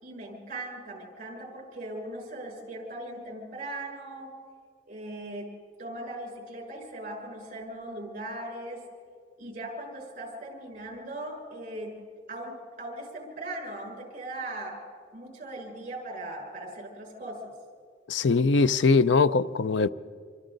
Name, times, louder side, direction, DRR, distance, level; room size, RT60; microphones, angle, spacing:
voice 1, 0.0-4.3 4.9-5.5 5.8-8.9 9.4-12.0 12.3-14.8 15.1-17.5, right 1 dB, 45° right, 6.3 m, -39 dB
voice 2, 18.1-19.9, left 4 dB, 90° left, 0.5 m, -22 dB
27.0 x 25.0 x 4.0 m
head